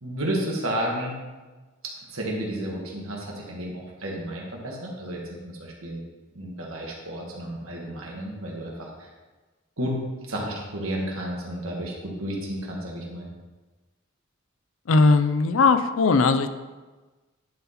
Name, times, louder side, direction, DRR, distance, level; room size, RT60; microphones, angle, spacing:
voice 1, 0.0-1.2 2.1-6.0 6.3-8.9 9.8-10.0 10.3-13.3, right 1 dB, 80° right, -2 dB, 1.7 m, -32 dB
voice 2, 14.9-16.5, left 4 dB, 70° left, 10 dB, 0.5 m, -19 dB
10.5 x 4.1 x 4.3 m, 1.3 s
head